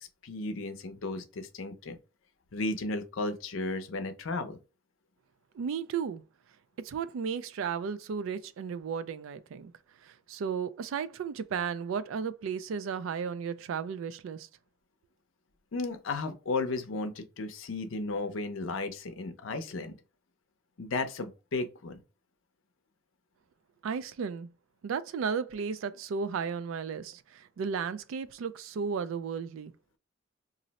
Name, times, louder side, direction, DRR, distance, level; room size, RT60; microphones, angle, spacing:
voice 1, 0.2-2.0 2.5-4.6 15.7-20.0 20.8-22.0, left 3 dB, 75° left, 0.6 m, -34 dB
voice 2, 5.5-6.2 6.8-9.7 10.0-14.5 23.8-24.5 24.8-29.7, right 6 dB, 75° right, 0.3 m, -34 dB
2.6 x 2.0 x 3.9 m
head